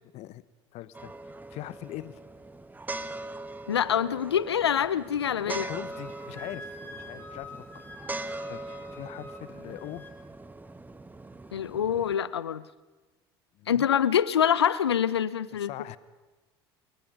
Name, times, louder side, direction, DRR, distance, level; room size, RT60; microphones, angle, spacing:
voice 1, 0.7-2.2 5.5-7.9 8.2-10.0 13.5-13.9 15.6-16.0, left 16 dB, 55° left, 17 dB, 1.0 m, -42 dB
sound 1, 0.9-12.2, right 2 dB, 15° right, 1.3 m, -41 dB
voice 2, 3.7-5.6 11.5-12.6 13.7-15.7, left 9 dB, 85° left, 18 dB, 0.7 m, -25 dB
Wind instrument woodwind instrument, 5.9-10.2, left 2 dB, 15° left, 5.9 m, -47 dB
29.5 x 21.0 x 5.4 m, 1.2 s
hypercardioid pair, 70°, 13 cm